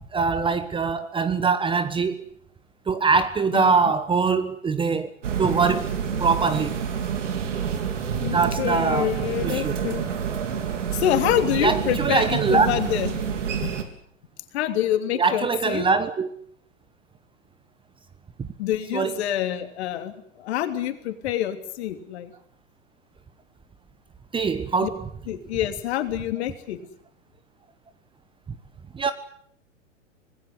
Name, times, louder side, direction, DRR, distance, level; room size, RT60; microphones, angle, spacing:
voice 1, 0.1-2.2 2.9-5.1 5.4-6.7 8.3-9.1 9.4-9.8 11.6-12.7 15.1-16.3 18.4-18.5 18.9-19.2 24.3-25.1 28.9-29.1, right 5 dB, 15° right, 1.2 m, -23 dB
sound 1, 5.2-13.8, right 7 dB, 65° right, 4.0 m, -28 dB
voice 2, 8.2-10.1 10.9-13.2 13.6-13.7 14.5-15.8 18.6-22.3 24.8-24.9 25.3-26.8, left 11 dB, 55° left, 3.2 m, -26 dB
25.5 x 20.0 x 8.0 m
figure-of-eight pair, 105°, 39 cm